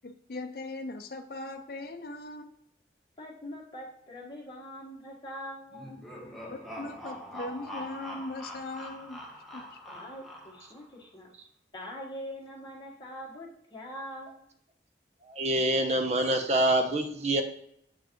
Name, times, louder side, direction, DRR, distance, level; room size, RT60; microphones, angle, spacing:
voice 1, 0.0-2.5 6.5-9.2 9.5-9.7, left 2 dB, 55° left, 4 dB, 0.5 m, -39 dB
voice 2, 3.2-6.0 9.9-11.3 11.7-14.4, equal, 25° left, -4 dB, 1.5 m, -43 dB
sound 1, 5.7-10.8, equal, ahead, 0.9 m, -43 dB
voice 3, 15.3-17.4, right 1 dB, 40° right, 6 dB, 0.7 m, -26 dB
7.8 x 4.5 x 3.0 m, 0.71 s
head